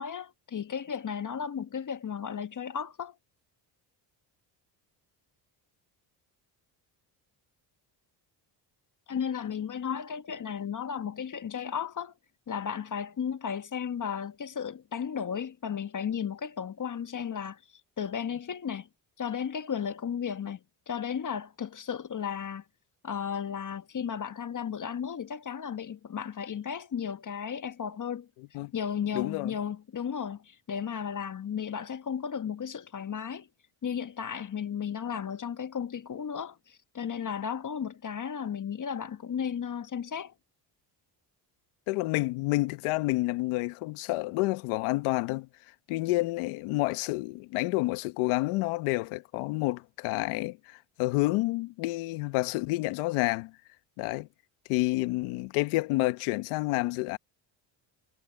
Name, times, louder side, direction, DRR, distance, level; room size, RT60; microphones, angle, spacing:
voice 1, 0.0-3.1 9.1-12.1 12.5-17.6 18.0-18.9 19.2-20.6 20.9-22.6 23.0-28.3 28.7-33.5 33.8-40.3, left 7 dB, 40° left, 1.3 m, -34 dB
voice 2, 29.1-29.5 41.9-45.5 45.9-53.5 54.0-54.3 54.7-57.2, left 21 dB, 90° left, 1.3 m, -29 dB
supercardioid pair, 65°, 49 cm